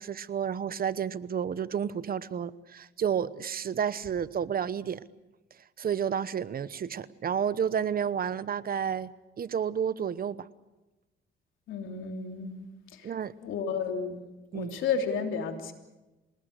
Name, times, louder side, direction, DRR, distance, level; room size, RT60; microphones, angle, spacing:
voice 1, 0.0-5.0 5.8-9.1 9.4-10.5 13.0-13.3 14.5-14.8, right 8 dB, 50° right, 16 dB, 1.0 m, -31 dB
voice 2, 11.7-12.7 12.9-13.1 13.4-14.2 14.5-15.7, left 5 dB, 80° left, 4 dB, 3.3 m, -32 dB
28.5 x 19.0 x 6.7 m, 1.1 s
cardioid pair, 90°, 20 cm